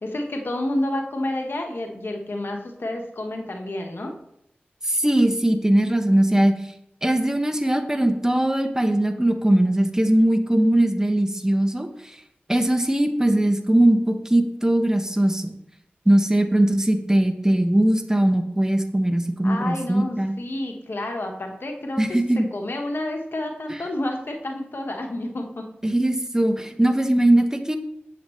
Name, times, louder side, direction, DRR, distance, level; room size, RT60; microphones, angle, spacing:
voice 1, 0.0-4.1 19.4-22.0 22.5-25.7, left 1 dB, 65° left, 2 dB, 1.2 m, -29 dB
voice 2, 4.9-6.5 7.0-11.9 12.5-15.5 16.1-20.3 22.0-22.5 23.7-23.8 25.8-27.8, right 1 dB, 15° right, 6 dB, 1.1 m, -20 dB
8.1 x 7.2 x 3.1 m, 0.77 s
cardioid pair, 40°, 4 cm